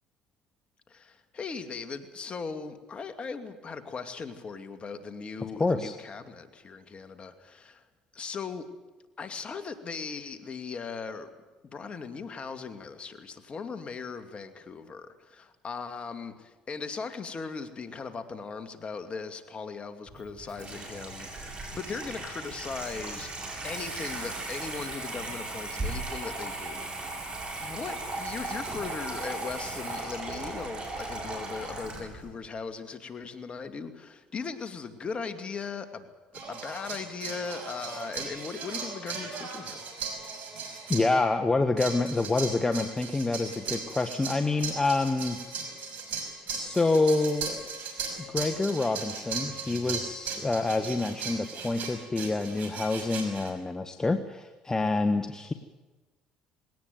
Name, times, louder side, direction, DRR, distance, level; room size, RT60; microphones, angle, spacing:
voice 1, 0.9-7.8 8.1-8.7 9.2-11.3 11.7-23.3 23.6-27.3 27.6-36.1 36.4-39.8, left 5 dB, 40° left, 8 dB, 2.5 m, -38 dB
voice 2, 5.6-5.9 40.9-45.4 46.5-47.8 48.3-55.5, left 3 dB, 20° left, 7 dB, 1.4 m, -27 dB
Water tap faucet / Sink (filling or washing), 20.1-32.3, right 2 dB, 35° right, 7.7 m, -37 dB
sound 1, 36.3-41.1 41.8-53.5, right 5 dB, 65° right, 5.6 m, -37 dB
20.0 x 18.0 x 9.3 m, 1.2 s
supercardioid pair, 70°, 3 cm